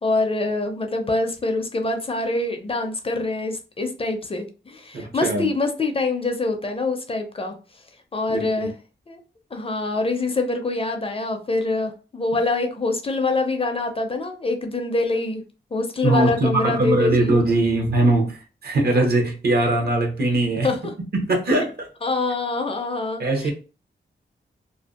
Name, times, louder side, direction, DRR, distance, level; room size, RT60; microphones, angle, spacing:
voice 1, 0.0-7.8 8.1-8.7 9.1-9.2 9.5-15.4 15.7-17.4 20.6-20.9 22.0-23.5, left 3 dB, 30° left, 0.4 m, -25 dB
voice 2, 4.9-5.5 8.3-8.7 16.0-20.7 21.1-21.9 23.2-23.5, right 2 dB, 60° right, 0.7 m, -21 dB
2.5 x 2.1 x 2.3 m
wide cardioid pair, 80°, 19 cm